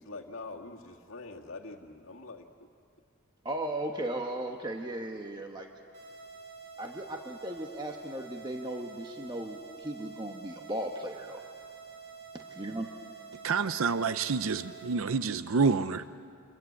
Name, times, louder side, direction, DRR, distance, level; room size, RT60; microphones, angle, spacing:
voice 1, 0.0-2.7, left 3 dB, 75° left, 1 dB, 1.9 m, -44 dB
voice 2, 3.4-5.7 6.8-11.4 12.3-13.1, right 1 dB, 20° right, 2 dB, 1.2 m, -37 dB
sound 1, 5.9-14.9, right 5 dB, 55° right, 4.4 m, -48 dB
voice 3, 13.4-16.0, right 5 dB, 75° right, 12 dB, 0.6 m, -28 dB
28.0 x 22.5 x 8.5 m, 2.2 s
head